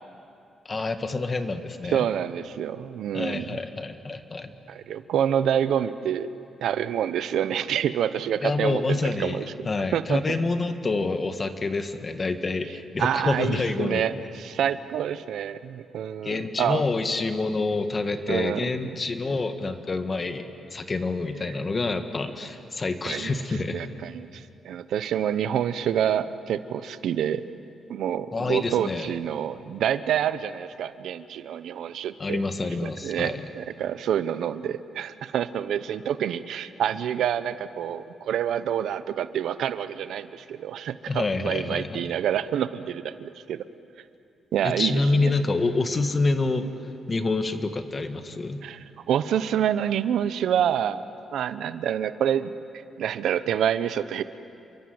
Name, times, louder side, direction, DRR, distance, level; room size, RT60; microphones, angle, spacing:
voice 1, 0.6-2.0 3.1-4.5 8.4-14.0 16.2-20.4 20.7-23.8 28.3-29.1 32.2-33.5 41.1-42.1 44.6-46.7 47.1-48.6, left 3 dB, 30° left, 8 dB, 1.7 m, -27 dB
voice 2, 1.9-3.6 4.7-6.3 6.6-10.4 13.0-16.8 18.3-18.6 23.1-23.4 23.7-27.4 27.9-32.4 32.8-43.6 44.5-45.3 48.6-51.0 51.3-52.5 53.0-54.2, right 9 dB, 85° right, 13 dB, 0.9 m, -27 dB
29.5 x 23.5 x 8.0 m, 2.6 s
cardioid pair, 115°, 0 cm